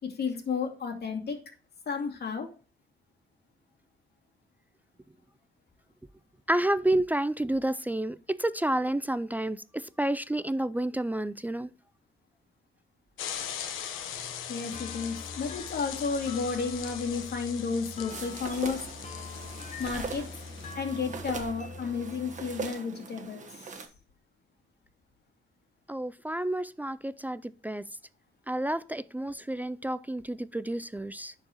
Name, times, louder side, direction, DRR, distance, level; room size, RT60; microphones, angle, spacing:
voice 1, 0.0-1.4 1.9-2.5 14.5-18.8 19.8-20.2 20.8-23.7, left 5 dB, 55° left, 2.4 m, -32 dB
voice 2, 6.5-11.7 25.9-27.9 28.5-31.3, right 1 dB, 10° right, 0.3 m, -30 dB
sound 1, 13.2-20.7, left 9 dB, 90° left, 1.1 m, -40 dB
sound 2, 14.1-22.7, left 4 dB, 40° left, 1.0 m, -44 dB
sound 3, 18.1-23.9, right 5 dB, 40° right, 1.4 m, -41 dB
11.0 x 4.7 x 3.0 m
cardioid pair, 90°, 20 cm